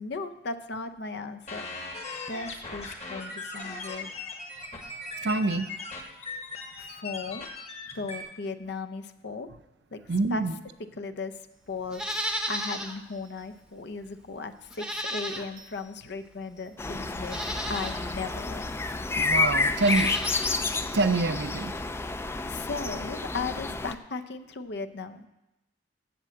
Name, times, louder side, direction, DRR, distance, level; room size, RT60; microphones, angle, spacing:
voice 1, 0.0-1.7 2.3-4.2 6.8-7.5 7.9-9.5 9.9-10.0 10.3-10.4 11.0-11.4 11.7-17.4 17.7-18.8 22.4-25.3, left 4 dB, 65° left, 9 dB, 0.6 m, -36 dB
sound 1, 1.5-8.2, left 3 dB, 35° left, 1.4 m, -39 dB
voice 2, 5.2-5.7 10.1-10.5 19.1-20.1 20.9-21.8, right 3 dB, 65° right, 12 dB, 0.6 m, -26 dB
Livestock farm animals working animals, 11.9-13.0 13.4-13.5 14.7-15.8 16.6-16.7 17.2-18.0 19.7-20.6 20.9-21.0, equal, 5° right, 0.8 m, -34 dB
sound 2, 16.8-24.0, left 3 dB, 15° left, 0.4 m, -30 dB
8.1 x 7.6 x 7.6 m, 0.94 s
head